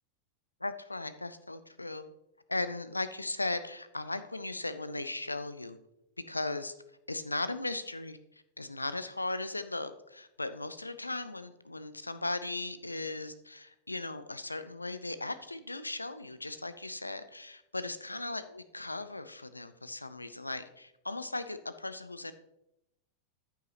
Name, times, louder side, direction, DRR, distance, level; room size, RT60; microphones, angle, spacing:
voice 1, 0.6-2.0 2.5-5.8 6.3-6.7 7.1-8.2 8.6-22.3, left 2 dB, 85° left, 12 dB, 0.5 m, -37 dB
13.5 x 5.8 x 2.9 m, 0.85 s
figure-of-eight pair, 90°, 0 cm